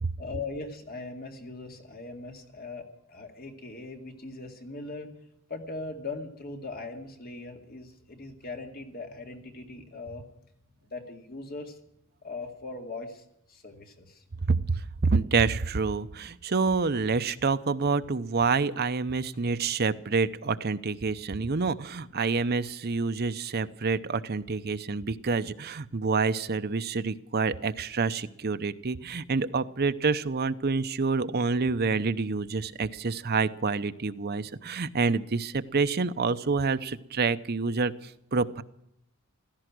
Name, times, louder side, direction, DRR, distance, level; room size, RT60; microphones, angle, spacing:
voice 1, 0.2-5.1 5.5-10.3 10.9-11.8 12.2-14.2, left 3 dB, 45° left, 4 dB, 2.2 m, -40 dB
voice 2, 14.4-38.6, right 4 dB, 45° right, 12 dB, 0.7 m, -27 dB
16.5 x 14.0 x 6.1 m, 0.76 s
head